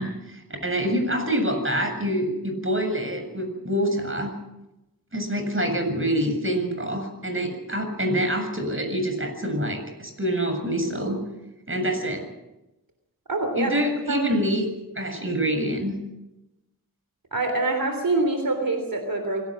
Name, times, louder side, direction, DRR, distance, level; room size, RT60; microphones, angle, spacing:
voice 1, 0.0-4.4 5.1-11.2 11.7-12.3 13.6-14.7 15.0-15.9, equal, 35° right, 6 dB, 7.4 m, -26 dB
voice 2, 13.3-13.8 14.1-14.2 17.3-19.4, right 2 dB, 75° right, 5 dB, 3.4 m, -25 dB
26.5 x 18.0 x 6.3 m, 0.94 s
cardioid pair, 45°, 34 cm